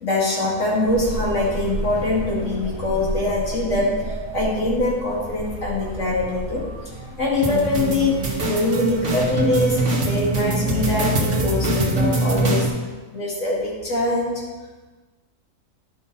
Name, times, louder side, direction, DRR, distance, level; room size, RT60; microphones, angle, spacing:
voice 1, 0.0-12.7 13.1-14.4, left 2 dB, 70° left, -5 dB, 2.6 m, -23 dB
sound 1, 0.9-9.7, right 2 dB, 25° right, 1.0 m, -33 dB
sound 2, 7.4-12.7, right 2 dB, 65° right, 1.6 m, -23 dB
12.0 x 5.5 x 4.0 m, 1.3 s
omnidirectional pair, 1.3 m